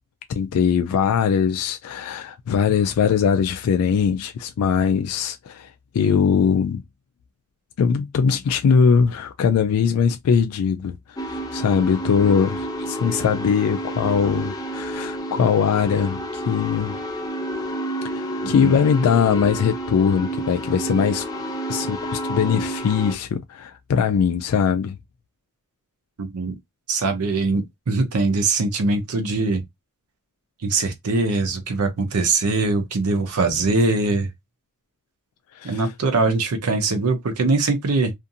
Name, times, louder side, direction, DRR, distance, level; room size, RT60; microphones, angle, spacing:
voice 1, 0.3-6.8 7.8-17.0 18.0-21.2 21.7-25.0 35.6-35.9, left 6 dB, 85° left, 0.3 m, -21 dB
sound 1, 11.2-23.1, right 1 dB, 15° left, 0.4 m, -30 dB
voice 2, 26.2-26.6 26.9-29.6 30.6-34.3 35.6-38.1, right 3 dB, 90° right, 0.6 m, -22 dB
2.5 x 2.4 x 2.6 m
head